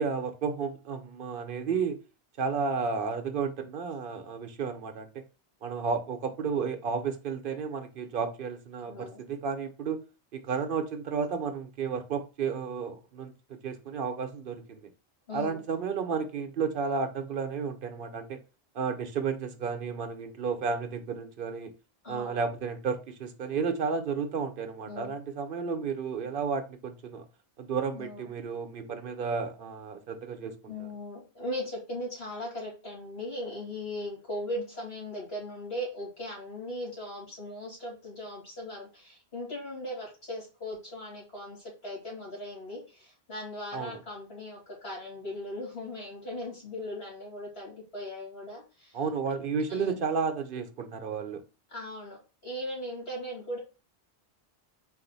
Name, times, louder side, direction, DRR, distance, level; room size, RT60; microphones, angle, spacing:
voice 1, 0.0-2.0 2.4-5.2 5.6-10.0 10.3-14.9 15.3-18.4 18.7-21.7 22.1-27.3 27.6-30.9 43.7-44.0 48.9-51.4, right 5 dB, 60° right, 0.8 m, -32 dB
voice 2, 8.9-9.2 15.3-15.6 15.9-16.0 22.0-22.4 24.9-25.1 27.9-28.2 30.7-48.9 49.7-50.0 51.7-53.6, left 1 dB, 75° left, 2.5 m, -38 dB
4.2 x 2.6 x 3.9 m
omnidirectional pair, 1.0 m